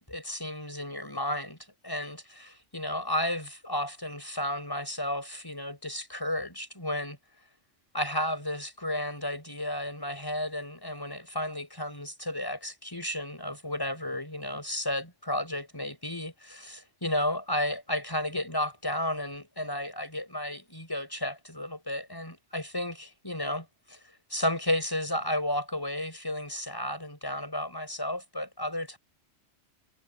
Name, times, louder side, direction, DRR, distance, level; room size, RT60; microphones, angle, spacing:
voice 1, 0.1-1.6 1.8-7.2 7.9-24.0 24.3-29.0, left 1 dB, 20° left, 6.8 m, -33 dB
omnidirectional pair, 1.2 m